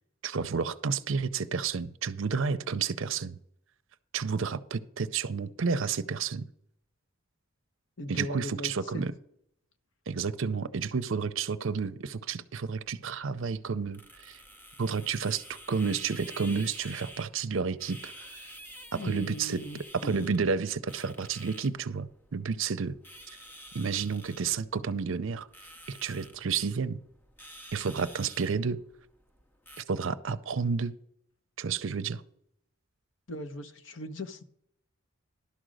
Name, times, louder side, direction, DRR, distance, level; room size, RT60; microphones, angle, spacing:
voice 1, 0.2-3.4 4.1-6.4 8.1-9.1 10.1-14.4 14.8-18.3 18.9-19.6 19.9-22.9 23.7-25.5 25.9-27.0 27.7-28.8 29.8-30.9 31.6-32.2, right 5 dB, 65° right, 13 dB, 0.5 m, -31 dB
voice 2, 8.0-9.0 18.9-20.4 33.3-34.4, left 1 dB, 60° left, 10 dB, 0.8 m, -39 dB
sound 1, 12.7-29.8, equal, 10° left, 0.6 m, -50 dB
12.0 x 5.1 x 6.4 m, 0.72 s
head